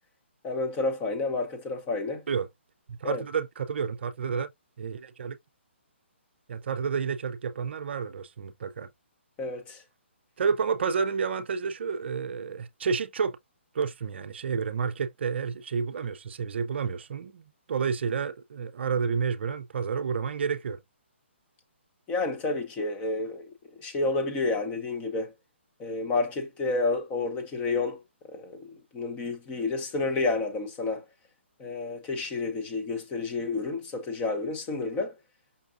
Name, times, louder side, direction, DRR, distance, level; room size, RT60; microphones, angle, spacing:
voice 1, 0.4-2.2 3.0-3.2 9.4-9.8 22.1-23.4 23.8-25.3 25.8-28.0 28.3-31.0 31.6-35.2, left 3 dB, 20° left, 0.7 m, -30 dB
voice 2, 2.9-4.5 4.8-5.4 6.5-8.9 10.4-13.4 13.7-17.4 17.7-20.8, right 6 dB, 60° right, 0.4 m, -30 dB
5.3 x 2.3 x 2.5 m
hypercardioid pair, 150°, 7 cm